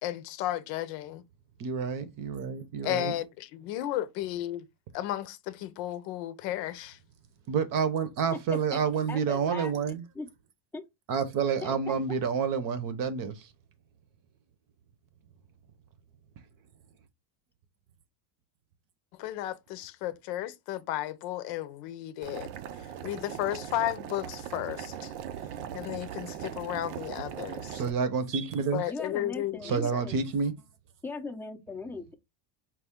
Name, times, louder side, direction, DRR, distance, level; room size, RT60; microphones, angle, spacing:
voice 1, 0.0-1.2 2.8-4.7 4.9-7.0 19.2-22.5 23.0-25.1 25.7-27.8 28.7-30.1, left 13 dB, 85° left, 0.7 m, -34 dB
voice 2, 1.6-3.1 7.5-10.0 11.1-13.5 27.7-28.8 29.6-30.5, right 6 dB, 45° right, 0.7 m, -29 dB
voice 3, 8.3-8.8 9.1-10.3 10.7-10.8 11.6-11.7 28.9-30.2 31.0-32.1, left 3 dB, 5° left, 0.5 m, -39 dB
Boiling, 22.2-27.9, right 9 dB, 85° right, 0.7 m, -39 dB
4.5 x 2.3 x 3.5 m
cardioid pair, 140°, 48 cm